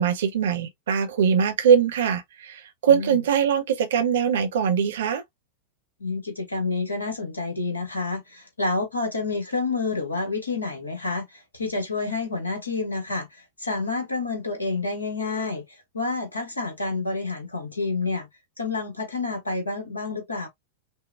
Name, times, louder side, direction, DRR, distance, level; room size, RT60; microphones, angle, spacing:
voice 1, 0.0-5.2, right 7 dB, 60° right, 0.8 m, -22 dB
voice 2, 2.9-3.2 6.0-18.3 18.6-20.5, left 3 dB, 80° left, 1.4 m, -29 dB
5.5 x 2.2 x 2.4 m
figure-of-eight pair, 90°, 0 cm